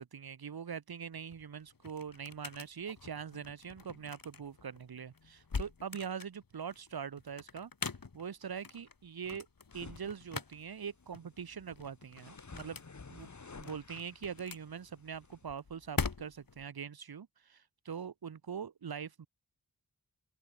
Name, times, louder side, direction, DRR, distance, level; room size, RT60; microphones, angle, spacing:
voice 1, 0.0-7.7 8.1-9.5 9.7-12.8 13.1-13.3 13.6-19.3, right 7 dB, 85° right, 2.0 m, -43 dB
sound 1, 1.1-16.6, left 4 dB, 65° left, 6.0 m, -44 dB
sound 2, 9.7-15.4, left 4 dB, 50° left, 3.2 m, -54 dB
open air
cardioid pair, 45°, 36 cm